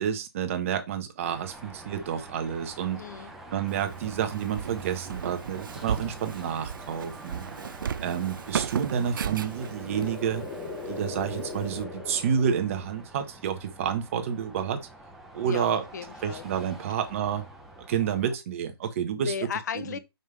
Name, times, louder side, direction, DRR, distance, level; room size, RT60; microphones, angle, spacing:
voice 1, 0.0-3.0 3.5-7.5 8.0-10.4 10.9-14.8 15.3-15.8 16.2-17.4 17.9-19.3 19.8-20.0, right 8 dB, 35° right, 1.0 m, -29 dB
Car passing by / Traffic noise roadway noise / Engine, 1.2-18.3, right 1 dB, ahead, 0.7 m, -46 dB
voice 2, 2.9-3.3 15.4-16.4 19.1-20.0, left 7 dB, 45° left, 0.7 m, -36 dB
Walk footsteps, 3.7-11.8, right 8 dB, 55° right, 0.4 m, -36 dB
sound 1, 9.0-13.2, left 4 dB, 15° left, 1.1 m, -40 dB
5.4 x 5.2 x 3.3 m
hypercardioid pair, 160°, 13 cm